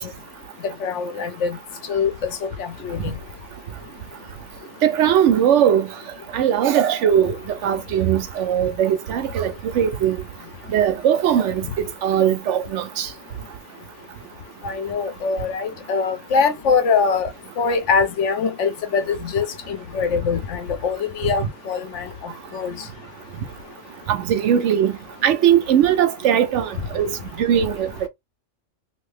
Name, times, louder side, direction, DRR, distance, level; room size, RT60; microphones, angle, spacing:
voice 1, 0.8-1.6 1.9-3.1 14.6-17.3 17.6-22.7, left 5 dB, 70° left, 1.0 m, -23 dB
voice 2, 4.8-5.8 6.3-7.3 7.6-10.2 10.7-11.6 12.0-13.1 24.1-24.9 25.2-26.7 26.9-27.9, right 9 dB, 70° right, 0.9 m, -19 dB
2.7 x 2.6 x 3.3 m
omnidirectional pair, 1.3 m